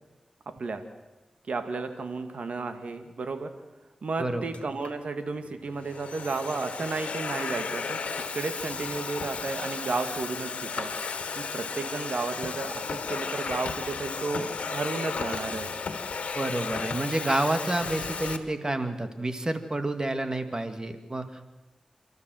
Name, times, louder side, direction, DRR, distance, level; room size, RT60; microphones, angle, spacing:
voice 1, 1.5-3.5 4.0-8.0 8.3-10.9 11.4-15.7, right 3 dB, 75° right, 8 dB, 2.0 m, -33 dB
Domestic sounds home sounds, 4.5-4.9 5.7-18.4, left 5 dB, 85° left, 1.7 m, -34 dB
voice 2, 16.4-21.3, right 2 dB, 35° right, 8 dB, 2.1 m, -29 dB
28.5 x 13.5 x 7.8 m, 1.1 s
cardioid pair, 45°, 2 cm